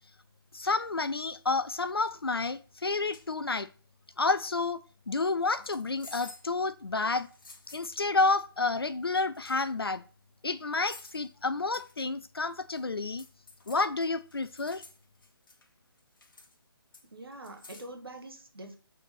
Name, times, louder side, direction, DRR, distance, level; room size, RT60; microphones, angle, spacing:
voice 1, 0.5-3.7 4.2-4.8 5.1-7.3 7.7-10.0 10.4-13.2 13.7-14.8, left 3 dB, 75° left, 0.5 m, -30 dB
sound 1, 0.6-0.8 1.5-1.8 2.7-2.8 3.1-3.3 5.5-6.5 7.2-7.9 9.0-9.1 9.3-9.7 10.7-11.3 11.7-12.0 12.4-12.8 13.2-15.7 16.0-16.6 16.9-17.9, left 3 dB, 60° left, 1.3 m, -52 dB
voice 2, 17.0-18.8, right 1 dB, 70° right, 1.5 m, -45 dB
6.5 x 4.2 x 4.0 m
figure-of-eight pair, 145°, 13 cm